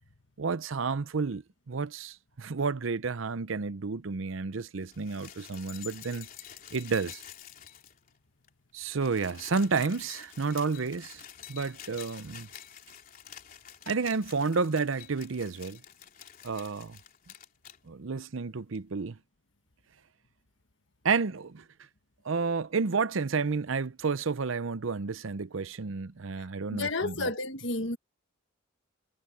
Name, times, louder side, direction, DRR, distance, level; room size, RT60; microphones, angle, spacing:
voice 1, 0.4-6.3 6.7-7.2 8.7-11.2 11.5-12.5 13.9-15.8 16.4-17.0 17.9-19.2 21.0-21.6 22.2-27.3, right 4 dB, 70° right, 0.7 m, -31 dB
sound 1, 4.8-8.2 8.4-8.5 8.8-17.8 18.7-18.8, left 9 dB, 40° left, 3.8 m, -48 dB
voice 2, 26.7-28.0, left 2 dB, 60° left, 1.5 m, -31 dB
head